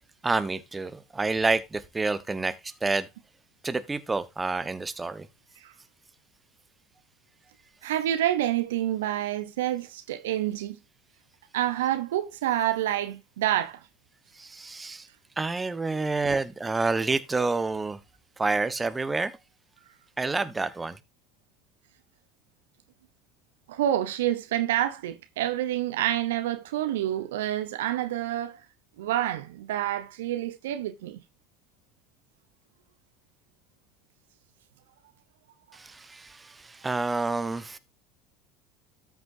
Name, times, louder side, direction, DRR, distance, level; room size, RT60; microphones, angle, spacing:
voice 1, 0.2-3.1 3.6-5.3 14.4-15.1 15.4-18.0 18.4-19.3 20.2-21.0 35.7-37.8, right 3 dB, 20° right, 1.1 m, -28 dB
voice 2, 7.8-10.8 11.5-13.8 23.7-28.6 29.0-31.2, right 12 dB, 80° right, 0.8 m, -28 dB
13.5 x 6.1 x 2.7 m
hypercardioid pair, 75°, 0 cm